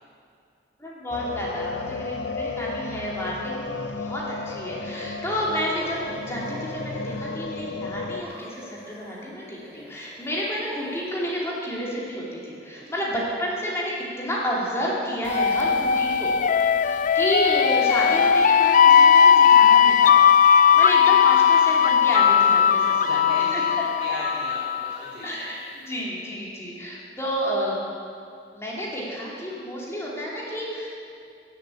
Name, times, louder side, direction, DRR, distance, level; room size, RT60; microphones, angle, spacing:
voice 1, 0.8-16.3 16.7-20.2 20.8-23.8 25.2-27.8 28.5-30.9, equal, 15° left, -5 dB, 2.9 m, -30 dB
sound 1, 1.1-8.2, left 3 dB, 65° left, 0.8 m, -33 dB
sound 2, 5.6-7.7 8.2-12.1, left 1 dB, 10° right, 2.4 m, -47 dB
sound 3, 15.3-25.0, left 7 dB, 45° left, 0.4 m, -17 dB
voice 2, 23.0-23.7 24.0-25.3, equal, 40° right, -12 dB, 3.5 m, -37 dB
16.0 x 7.6 x 8.5 m, 2.4 s
head